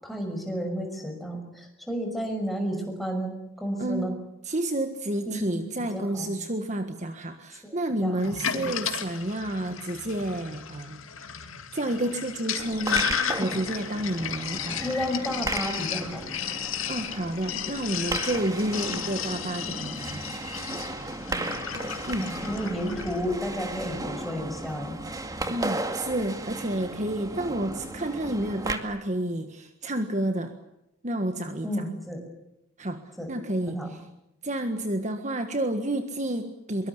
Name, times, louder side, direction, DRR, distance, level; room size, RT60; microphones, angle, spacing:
voice 1, 0.0-4.1 5.3-5.7 5.9-6.3 7.6-8.7 14.8-16.2 18.8-18.9 21.3-21.5 22.2-25.0 31.6-32.2 33.2-33.3 33.7-33.9, equal, ahead, 2 dB, 6.1 m, -32 dB
voice 2, 3.8-4.1 4.4-11.0 11.3-13.1 13.4-14.8 16.9-20.2 22.1-22.5 25.5-30.5 31.0-31.8 32.8-34.0 34.4-36.9, right 1 dB, 35° right, 7 dB, 1.6 m, -30 dB
Sink (filling or washing), 8.2-23.2, left 8 dB, 85° left, 2.4 m, -34 dB
sound 1, 12.6-28.8, right 2 dB, 15° right, 2.1 m, -35 dB
23.5 x 23.5 x 8.2 m, 0.86 s
head